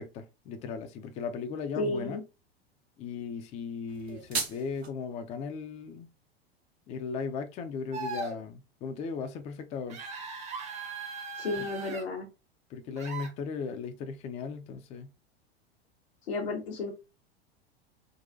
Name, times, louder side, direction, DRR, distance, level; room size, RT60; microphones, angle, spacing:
voice 1, 0.0-2.2 3.0-6.1 6.9-10.0 11.6-11.7 12.7-15.1, left 5 dB, 20° left, 0.4 m, -37 dB
voice 2, 1.8-2.2 11.4-12.3 16.3-16.9, left 3 dB, 70° left, 0.8 m, -32 dB
sound 1, 3.9-4.9, right 5 dB, 80° right, 0.8 m, -35 dB
sound 2, 7.9-8.4 9.9-12.0 13.0-13.3, right 4 dB, 20° right, 0.6 m, -38 dB
3.8 x 2.3 x 2.5 m
figure-of-eight pair, 85°, 31 cm